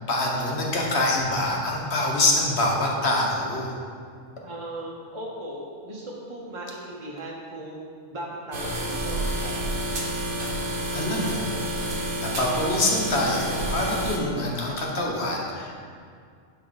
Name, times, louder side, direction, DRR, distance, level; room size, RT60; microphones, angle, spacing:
voice 1, 0.1-3.7 10.9-11.6 12.2-15.7, left 1 dB, 60° left, -1 dB, 1.3 m, -25 dB
voice 2, 4.4-7.8 8.1-9.6, right 1 dB, 30° right, -4 dB, 0.7 m, -37 dB
sound 1, 8.5-14.2, right 1 dB, 70° right, 1.2 m, -29 dB
9.8 x 3.8 x 3.9 m, 2.2 s
omnidirectional pair, 1.3 m